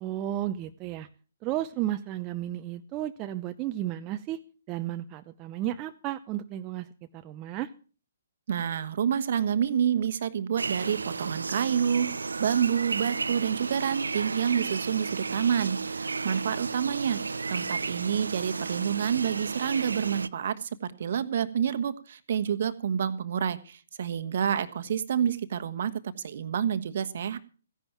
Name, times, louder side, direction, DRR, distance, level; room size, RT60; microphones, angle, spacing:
voice 1, 0.0-1.1 1.4-4.4 4.7-6.9 7.1-7.7, right 13 dB, 25° right, 8 dB, 0.7 m, -33 dB
voice 2, 8.5-25.9 26.2-27.4, right 8 dB, 50° right, 12 dB, 1.3 m, -28 dB
sound 1, 10.6-20.3, right 4 dB, 75° right, 0.6 m, -33 dB
15.5 x 10.5 x 5.9 m, 0.38 s
figure-of-eight pair, 130°, 0 cm